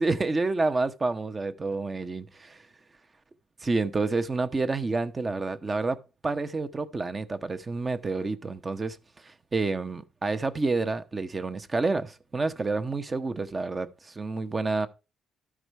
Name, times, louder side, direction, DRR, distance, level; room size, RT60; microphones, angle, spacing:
voice 1, 0.0-2.6 3.6-6.0 6.2-9.0 9.2-14.9, right 3 dB, 30° right, 0.9 m, -29 dB
12.5 x 4.9 x 4.7 m
cardioid pair, 90°, 0 cm